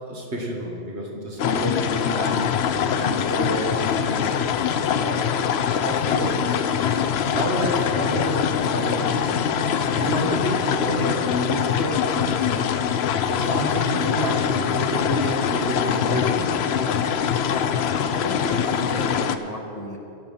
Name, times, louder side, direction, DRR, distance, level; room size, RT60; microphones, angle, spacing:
voice 1, 0.0-2.6 3.0-4.4 5.0-5.3 5.8-6.5 7.2-8.4 8.7-9.3 9.9-12.7 13.2-16.6, equal, 70° right, -1 dB, 2.0 m, -29 dB
sound 1, 1.4-19.4, left 7 dB, 70° left, 0.8 m, -23 dB
voice 2, 17.4-17.7 18.0-20.0, left 2 dB, 35° left, 0 dB, 1.3 m, -33 dB
17.0 x 7.1 x 5.6 m, 2.9 s
omnidirectional pair, 1.2 m